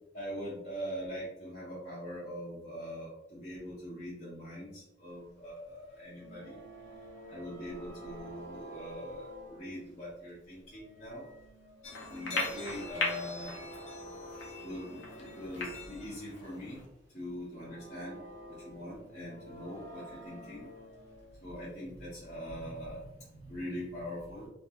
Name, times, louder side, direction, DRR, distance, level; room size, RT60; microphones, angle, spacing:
voice 1, 0.1-6.6 7.3-11.2 12.1-13.5 14.6-16.8 17.1-18.2 18.5-20.7 21.4-24.5, equal, 35° left, -10 dB, 0.8 m, -42 dB
sound 1, 5.7-10.3 10.7-16.2 16.4-16.5 17.5-21.5 22.6-22.7, right 1 dB, 80° right, 0.5 m, -49 dB
sound 2, 11.8-16.8, left 3 dB, 75° left, 0.6 m, -39 dB
2.4 x 2.1 x 2.9 m, 0.87 s
head